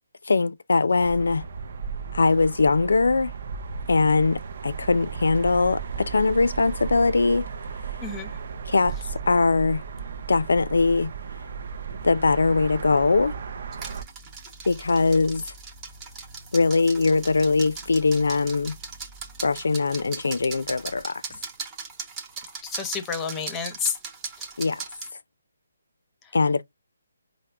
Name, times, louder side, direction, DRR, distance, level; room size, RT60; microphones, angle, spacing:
voice 1, 0.2-1.4 2.1-3.3 3.9-7.5 8.7-9.8 10.3-11.1 12.0-13.3 14.7-15.5 16.5-18.8 19.4-21.2 24.6-24.9 26.3-26.6, left 3 dB, 80° left, 0.4 m, -21 dB
sound 1, 1.0-14.0, right 6 dB, 50° right, 0.5 m, -35 dB
sound 2, 2.9-21.0, right 1 dB, 75° right, 1.1 m, -49 dB
voice 2, 8.0-8.3 22.6-24.0 24.4-24.5 26.2-26.4, left 6 dB, 10° left, 0.7 m, -30 dB
sound 3, 13.7-25.1, right 5 dB, 15° right, 0.8 m, -39 dB
4.8 x 2.1 x 3.3 m
hypercardioid pair, 160°, 0 cm